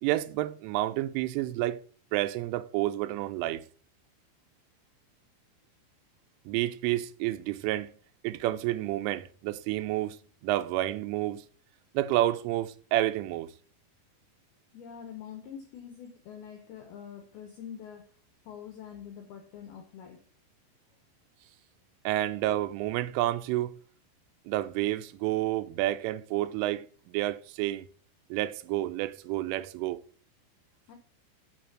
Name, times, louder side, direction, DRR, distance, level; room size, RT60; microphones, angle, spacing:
voice 1, 0.0-1.8 2.1-3.6 6.5-7.9 8.2-10.2 10.4-11.4 11.9-13.5 22.1-23.8 24.5-27.9 28.3-30.0, right 15 dB, 85° right, 3.0 m, -29 dB
voice 2, 14.7-18.1 18.5-20.3 30.9-31.0, left 8 dB, 80° left, 2.2 m, -45 dB
8.3 x 5.8 x 6.0 m
omnidirectional pair, 5.8 m